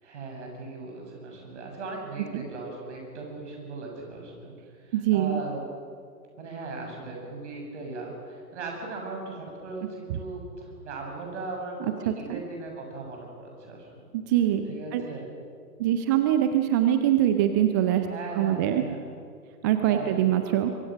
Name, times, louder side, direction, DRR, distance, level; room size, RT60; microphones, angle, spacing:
voice 1, 0.0-4.5 4.8-5.6 6.4-14.0 14.7-15.3 18.1-19.0 19.8-20.3, right 3 dB, 50° right, 1 dB, 7.6 m, -38 dB
voice 2, 4.9-5.4 10.1-10.2 12.1-12.4 14.1-14.6 14.9-15.0 15.8-18.1 18.4-18.8 19.6-20.7, right 11 dB, 15° right, 7 dB, 0.5 m, -23 dB
25.5 x 22.5 x 6.4 m, 2.2 s
figure-of-eight pair, 115°, 45 cm